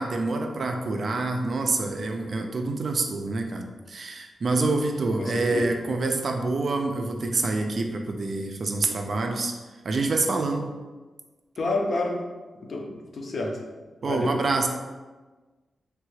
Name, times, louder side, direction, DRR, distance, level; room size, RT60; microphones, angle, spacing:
voice 1, 0.0-9.5 9.8-10.7 14.0-14.7, right 3 dB, 50° right, 3 dB, 0.3 m, -27 dB
voice 2, 5.2-5.7 11.6-12.2 12.6-13.6 14.0-14.3, left 2 dB, 50° left, 0 dB, 0.5 m, -29 dB
3.3 x 2.3 x 3.1 m, 1.3 s
wide cardioid pair, 145°, 0 cm